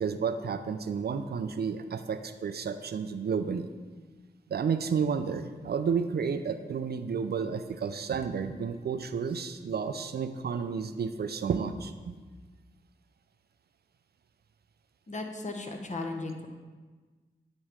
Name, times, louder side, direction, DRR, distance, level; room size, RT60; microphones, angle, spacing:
voice 1, 0.0-3.7 4.5-12.1, right 6 dB, 60° right, 9 dB, 0.4 m, -31 dB
voice 2, 15.1-16.5, left 2 dB, 40° left, 4 dB, 1.0 m, -36 dB
8.7 x 3.1 x 4.9 m, 1.4 s
cardioid pair, 45°, 19 cm